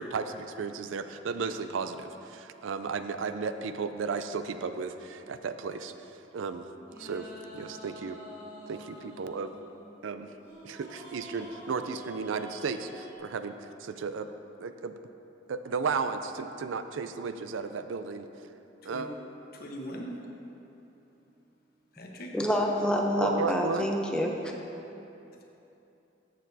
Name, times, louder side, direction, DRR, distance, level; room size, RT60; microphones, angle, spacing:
voice 1, 0.0-5.9 6.3-6.7 7.0-7.3 7.5-8.2 8.7-9.5 10.0-10.3 10.6-14.3 14.6-14.9 15.5-18.3 18.9-19.1 23.2-23.9, right 5 dB, 85° right, 9 dB, 0.4 m, -34 dB
sound 1, 6.8-13.2, equal, 10° right, 1.8 m, -48 dB
voice 2, 19.5-20.1 21.9-22.3, equal, 50° left, 0 dB, 1.0 m, -40 dB
voice 3, 22.3-24.5, equal, 5° left, 0 dB, 0.6 m, -27 dB
13.5 x 6.6 x 2.7 m, 3.0 s
head